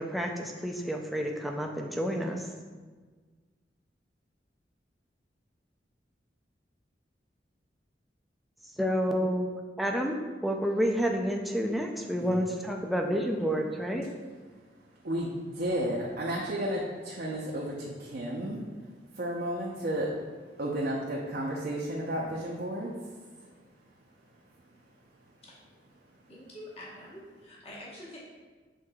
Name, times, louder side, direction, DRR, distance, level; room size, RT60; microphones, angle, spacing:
voice 1, 0.0-2.4 8.8-9.5 9.8-10.2 10.4-14.1, equal, ahead, 1 dB, 0.3 m, -29 dB
voice 2, 15.0-18.6 19.2-20.2 20.6-23.0, right 1 dB, 55° right, -4 dB, 0.5 m, -32 dB
voice 3, 26.3-28.2, left 1 dB, 35° left, -6 dB, 1.0 m, -46 dB
6.4 x 3.6 x 2.3 m, 1.4 s
head